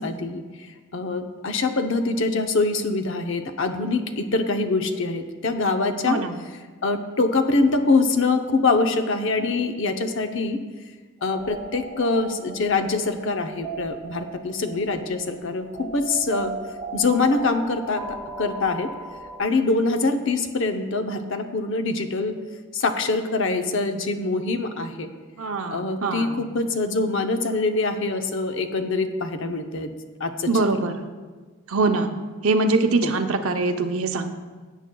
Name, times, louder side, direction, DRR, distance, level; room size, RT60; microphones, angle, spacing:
voice 1, 0.0-6.2 6.8-10.6 11.2-16.5 16.9-18.0 18.4-18.9 19.4-22.4 22.7-25.1 25.7-29.9 30.2-30.8 33.0-33.1, left 3 dB, 60° left, 7 dB, 0.7 m, -24 dB
voice 2, 6.1-6.4 25.4-26.4 30.5-31.0 31.7-32.1 32.4-34.3, right 3 dB, 75° right, 6 dB, 0.7 m, -23 dB
sound 1, 11.2-19.4, right 3 dB, 5° right, 3.3 m, -38 dB
17.0 x 8.1 x 2.3 m, 1.4 s
head